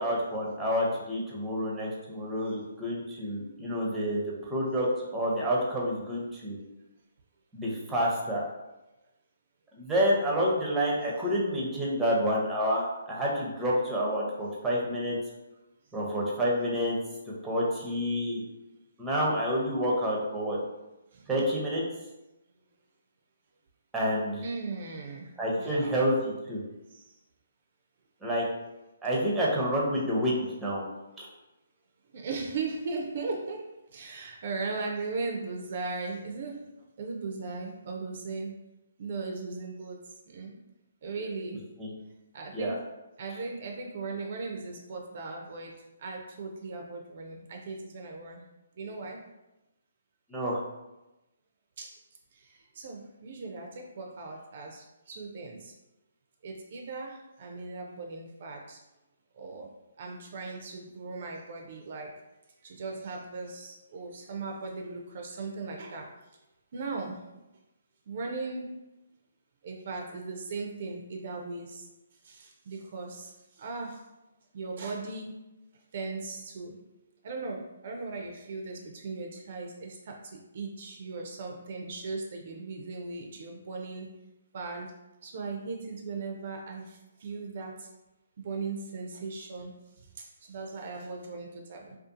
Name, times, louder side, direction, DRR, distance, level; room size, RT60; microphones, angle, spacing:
voice 1, 0.0-6.6 7.5-8.4 9.7-15.2 15.9-17.0 17.4-18.4 19.0-20.6 21.3-21.8 23.9-24.4 25.4-26.6 28.2-28.5 29.0-30.8 31.2-31.3 41.2-41.3 41.8-41.9 42.5-42.7 50.3-50.6, equal, 5° right, -4 dB, 0.6 m, -28 dB
voice 2, 24.4-26.0 26.9-27.1 32.1-36.7 37.0-38.6 39.0-40.6 41.0-41.7 42.3-42.9 43.2-45.7 46.0-48.5 48.8-49.2 51.8-52.0 52.3-55.7 56.4-58.8 59.4-59.7 60.0-62.2 62.6-66.2 66.7-67.2 68.1-68.7 69.6-71.9 72.2-74.0 74.5-75.4 75.9-76.8 77.2-84.1 84.5-85.0 85.2-87.9 88.4-89.8 90.2-92.0, right 3 dB, 50° right, 2 dB, 0.3 m, -38 dB
2.5 x 2.3 x 2.5 m, 0.98 s
hypercardioid pair, 150°, 0 cm